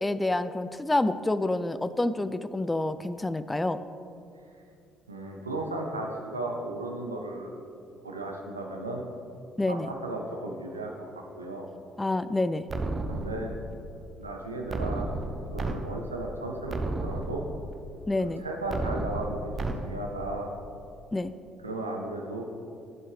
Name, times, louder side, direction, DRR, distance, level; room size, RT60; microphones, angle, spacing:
voice 1, 0.0-3.8 9.6-9.9 12.0-12.6 18.1-18.4 21.1-21.3, left 2 dB, 15° left, 13 dB, 0.3 m, -28 dB
voice 2, 5.1-7.6 8.0-9.0 9.7-11.7 13.1-13.6 14.2-15.1 15.4-17.4 18.4-20.5 21.6-22.4, right 2 dB, 90° right, 1 dB, 0.6 m, -35 dB
sound 1, 12.7-13.7 14.7-15.7 16.2-16.3 16.7-17.7 18.7-19.7, right 2 dB, 35° right, 0.6 m, -32 dB
7.8 x 7.5 x 3.3 m, 2.6 s
figure-of-eight pair, 50°, 0 cm